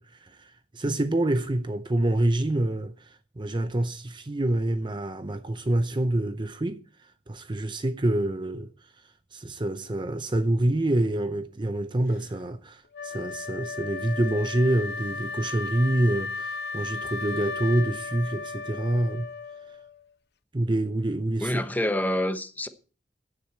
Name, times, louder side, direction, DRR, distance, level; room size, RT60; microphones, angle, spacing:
voice 1, 0.0-3.1 3.4-6.8 7.3-8.7 9.3-19.3 20.5-21.6, right 1 dB, 25° right, 0.7 m, -27 dB
Wind instrument woodwind instrument, 12.9-19.9, left 4 dB, 65° left, 0.9 m, -35 dB
voice 2, 21.4-22.7, left 1 dB, 10° left, 1.1 m, -27 dB
16.0 x 10.0 x 4.4 m
head